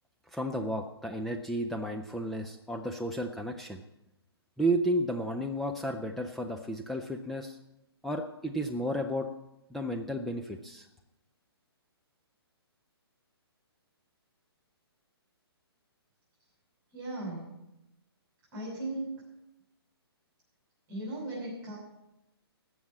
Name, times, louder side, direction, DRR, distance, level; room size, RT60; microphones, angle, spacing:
voice 1, 0.3-3.8 4.6-7.6 8.0-9.3 9.7-10.9, right 1 dB, ahead, 1 dB, 0.5 m, -32 dB
voice 2, 16.9-17.5 18.5-19.2 20.9-21.8, right 1 dB, 20° right, -6 dB, 6.3 m, -37 dB
16.0 x 6.3 x 8.6 m, 0.92 s
hypercardioid pair, 140°, 13 cm